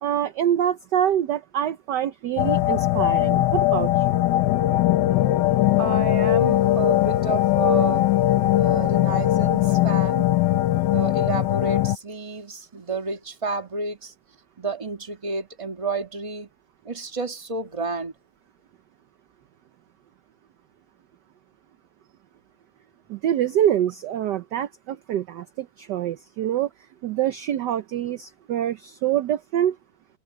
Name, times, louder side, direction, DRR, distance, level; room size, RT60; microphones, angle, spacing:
voice 1, 0.0-4.0 23.1-26.7 27.0-29.8, right 10 dB, 65° right, 1.2 m, -25 dB
sound 1, 2.4-12.0, left 14 dB, 70° left, 1.1 m, -20 dB
voice 2, 5.8-8.1 8.5-10.3 10.8-14.1 14.6-16.5 16.8-18.1, right 4 dB, 15° right, 1.6 m, -30 dB
open air
omnidirectional pair, 2.4 m